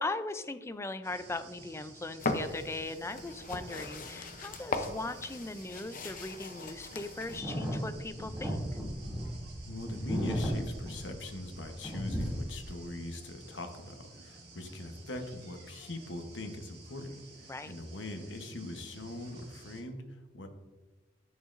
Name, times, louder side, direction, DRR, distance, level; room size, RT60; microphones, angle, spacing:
voice 1, 0.0-8.6 17.5-17.7, left 2 dB, 15° left, 11 dB, 0.4 m, -39 dB
sound 1, 1.0-19.8, right 2 dB, 60° right, 1.7 m, -53 dB
sound 2, 2.2-7.4, left 3 dB, 50° left, 0.7 m, -38 dB
sound 3, 7.3-11.6 11.8-12.6, equal, 10° right, 2.5 m, -35 dB
voice 2, 9.6-20.5, left 1 dB, 80° left, 5 dB, 1.0 m, -41 dB
10.5 x 6.4 x 2.6 m, 1.2 s
head